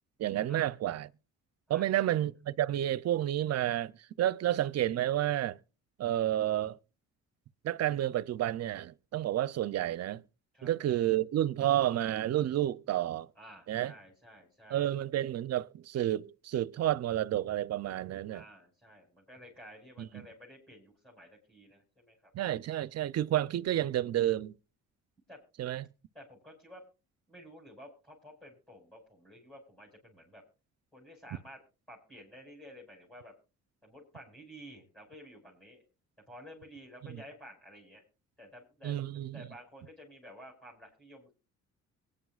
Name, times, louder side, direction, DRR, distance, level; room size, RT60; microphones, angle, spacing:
voice 1, 0.2-1.1 1.7-3.9 4.2-5.6 6.0-6.8 7.6-10.2 10.6-13.3 13.7-13.9 14.7-18.4 20.0-20.2 22.3-24.5 25.6-25.9 37.1-37.2 38.8-39.4, right 12 dB, 55° right, 0.6 m, -30 dB
voice 2, 1.7-2.1 10.5-10.7 13.4-14.9 18.3-22.3 25.3-25.4 26.1-26.8 27.3-30.4 30.9-31.6 31.9-33.3 33.8-35.8 36.3-38.0 38.4-41.3, equal, ahead, 5.3 m, -52 dB
23.5 x 9.9 x 2.4 m
cardioid pair, 90°, 30 cm